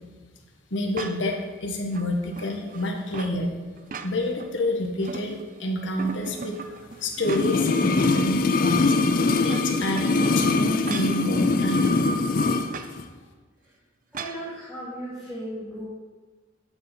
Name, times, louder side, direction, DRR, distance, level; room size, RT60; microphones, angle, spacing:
voice 1, 0.7-3.5 4.0-8.9 9.4-11.9 13.0-13.1, left 1 dB, 85° left, 2 dB, 1.5 m, -28 dB
sound 1, 0.9-1.4 1.9-3.4 3.8-4.5 4.8-5.6 6.0-7.7 8.1-8.2 9.2-11.2 12.7-12.9 14.1-14.4, right 4 dB, 45° right, 0.5 m, -38 dB
sound 2, 7.2-12.7 13.0-13.1, left 3 dB, 50° left, 0.5 m, -22 dB
voice 2, 14.1-15.9, right 1 dB, ahead, -13 dB, 2.9 m, -36 dB
8.7 x 8.1 x 4.4 m, 1.4 s
head